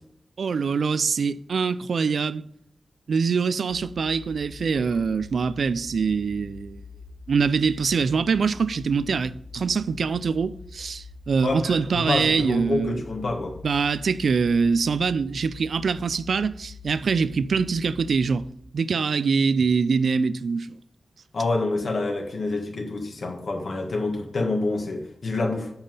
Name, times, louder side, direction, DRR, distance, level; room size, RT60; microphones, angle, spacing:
voice 1, 0.4-2.4 3.1-6.8 7.3-13.0 13.6-18.4 18.7-20.8, right 5 dB, 70° right, 0.3 m, -24 dB
sound 1, 3.7-18.5, left 4 dB, 85° left, 3.2 m, -44 dB
voice 2, 11.4-13.6 21.3-25.7, left 2 dB, 60° left, 1.5 m, -27 dB
8.8 x 5.4 x 5.4 m
wide cardioid pair, 140°, 0 cm